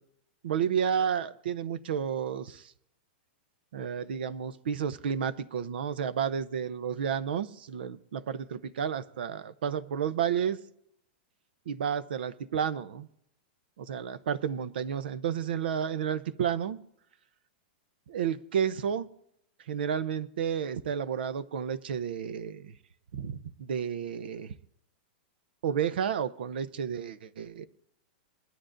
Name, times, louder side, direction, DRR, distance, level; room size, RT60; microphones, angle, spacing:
voice 1, 0.4-2.7 3.7-10.6 11.7-13.1 13.8-16.8 18.1-19.1 19.7-22.8 23.1-24.5 25.6-27.7, right 8 dB, 80° right, 0.7 m, -31 dB
21.5 x 12.5 x 2.6 m
supercardioid pair, 180°, 5 cm